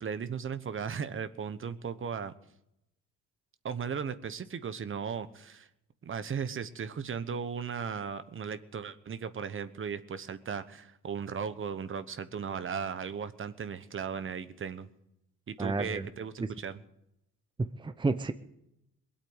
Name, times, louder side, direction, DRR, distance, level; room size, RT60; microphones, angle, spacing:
voice 1, 0.0-2.3 3.6-5.7 6.0-14.9 15.5-16.8, right 6 dB, 45° right, 12 dB, 1.1 m, -36 dB
voice 2, 15.6-16.1 17.6-18.3, right 3 dB, 15° right, 11 dB, 0.8 m, -31 dB
20.5 x 8.6 x 7.9 m, 0.82 s
cardioid pair, 90°, 30 cm